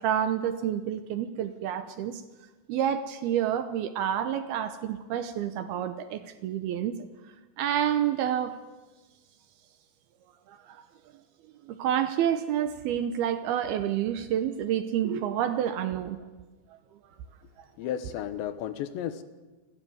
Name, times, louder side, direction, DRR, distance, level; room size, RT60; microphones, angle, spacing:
voice 1, 0.0-2.2 2.7-7.0 7.6-8.5 10.5-10.8 11.7-16.2, right 10 dB, 75° right, 9 dB, 2.5 m, -29 dB
voice 2, 17.8-19.2, left 10 dB, 80° left, 11 dB, 3.4 m, -33 dB
28.5 x 13.0 x 9.4 m, 1.2 s
omnidirectional pair, 5.2 m